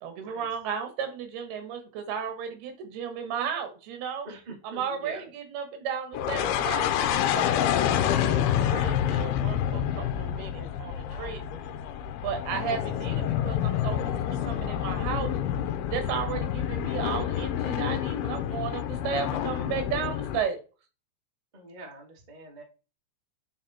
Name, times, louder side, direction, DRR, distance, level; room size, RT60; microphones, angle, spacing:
voice 1, 0.0-4.3 4.6-11.7 12.2-15.3 15.9-20.6, right 7 dB, 90° right, 7 dB, 3.4 m, -34 dB
voice 2, 4.7-5.2 21.5-22.6, right 1 dB, 70° right, 0 dB, 0.4 m, -44 dB
sound 1, 6.1-20.4, left 10 dB, 85° left, 2.6 m, -28 dB
9.1 x 4.0 x 4.2 m, 0.33 s
omnidirectional pair, 4.4 m